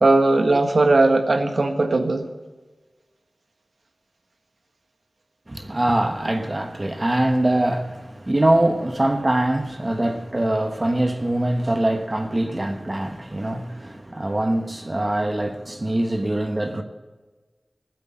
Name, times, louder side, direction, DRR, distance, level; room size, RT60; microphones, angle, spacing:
voice 1, 0.0-2.2, right 2 dB, 70° right, 1.5 m, -18 dB
voice 2, 5.5-16.8, right 1 dB, 30° right, 1.2 m, -23 dB
15.5 x 8.3 x 9.5 m
wide cardioid pair, 70°, 0 cm